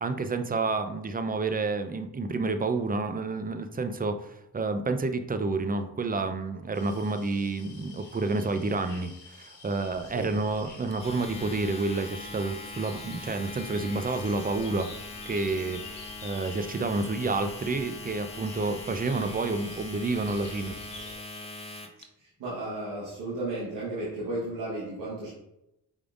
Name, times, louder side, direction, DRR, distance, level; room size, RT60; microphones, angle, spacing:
voice 1, 0.0-14.9 15.3-15.8 16.2-20.8, right 3 dB, 20° right, 8 dB, 0.5 m, -29 dB
sound 1, 6.7-21.8, left 4 dB, 45° left, 1.1 m, -51 dB
sound 2, 9.8-21.2, left 3 dB, 80° left, 1.1 m, -50 dB
Domestic sounds home sounds, 10.9-22.0, left 2 dB, 15° left, 0.7 m, -42 dB
voice 2, 22.2-25.3, right 2 dB, 90° right, -8 dB, 1.2 m, -34 dB
4.7 x 3.6 x 2.4 m, 0.85 s
supercardioid pair, 45°, 42 cm